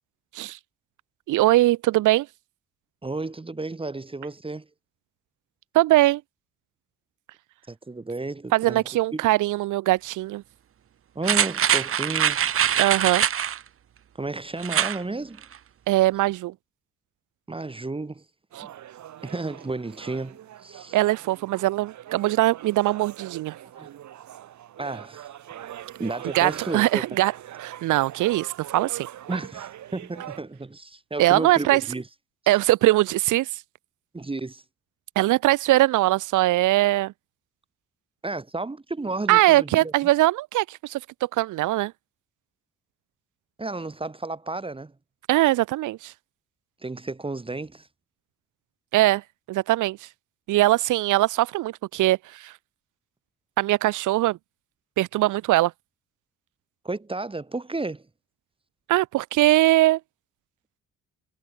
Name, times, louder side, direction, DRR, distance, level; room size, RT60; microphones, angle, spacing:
voice 1, 1.3-2.3 5.7-6.2 8.5-10.4 12.8-13.2 15.9-16.5 18.6-18.7 20.9-23.6 26.3-27.3 27.6-29.1 31.2-31.8 32.5-33.5 35.1-37.1 39.3-41.9 45.3-46.1 48.9-49.2 49.5-50.1 50.5-52.5 53.6-54.4 55.0-55.7 58.9-60.0, right 17 dB, 90° right, 1.2 m, -21 dB
voice 2, 3.0-4.7 7.7-8.8 9.1-9.3 11.2-12.4 14.2-15.4 17.5-18.2 18.6-18.7 19.2-21.0 23.8-23.9 24.8-25.3 26.0-27.0 29.3-32.1 34.1-34.6 38.2-39.9 43.6-44.9 46.8-47.9 56.8-58.0, right 3 dB, 20° right, 1.9 m, -32 dB
sound 1, 11.2-13.6 14.6-15.0 15.4-15.5, right 9 dB, 45° right, 1.0 m, -23 dB
sound 2, 18.5-30.4, right 11 dB, 70° right, 2.5 m, -42 dB
cardioid pair, 90°, 30 cm